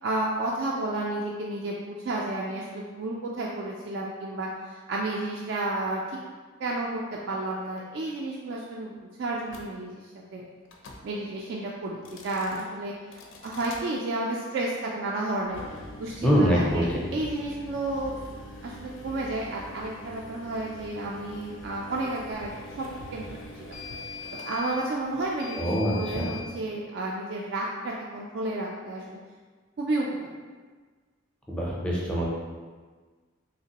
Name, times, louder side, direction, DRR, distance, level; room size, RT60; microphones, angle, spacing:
voice 1, 0.0-6.2 6.6-7.0 7.3-8.9 9.2-9.9 10.3-10.4 11.0-12.9 13.4-15.6 16.0-16.8 17.1-18.1 18.6-22.5 22.8-23.3 23.6-23.8 24.3-29.2 29.8-30.1, right 2 dB, 55° right, -3 dB, 0.3 m, -31 dB
sound 1, 9.5-9.7 10.7-11.0 11.9-12.6 13.1-13.8 15.4-26.5, left 2 dB, 70° left, 0.4 m, -43 dB
voice 2, 16.2-17.0 25.6-26.4 31.5-32.3, equal, 5° left, -5 dB, 0.5 m, -24 dB
3.2 x 2.9 x 2.8 m, 1.4 s
head